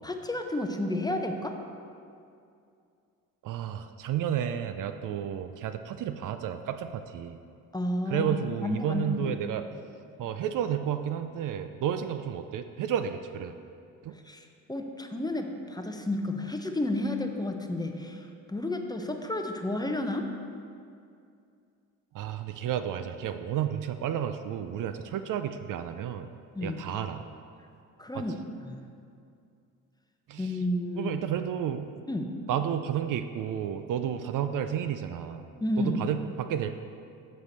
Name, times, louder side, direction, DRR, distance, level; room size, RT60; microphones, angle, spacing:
voice 1, 0.0-1.5 7.7-8.3 8.6-9.4 14.1-20.3 26.5-26.8 28.0-28.3 28.6-28.9 30.4-31.1 32.1-32.4 35.6-36.0, left 1 dB, 10° left, 4 dB, 0.6 m, -31 dB
voice 2, 3.4-7.4 8.1-9.6 10.2-13.6 14.0-14.2 22.1-26.3 26.6-27.2 28.1-28.2 30.3-30.6 31.0-31.9 32.5-35.4 35.8-36.8, right 9 dB, 55° right, 9 dB, 0.5 m, -31 dB
6.9 x 6.3 x 4.2 m, 2.4 s
supercardioid pair, 60°, 38 cm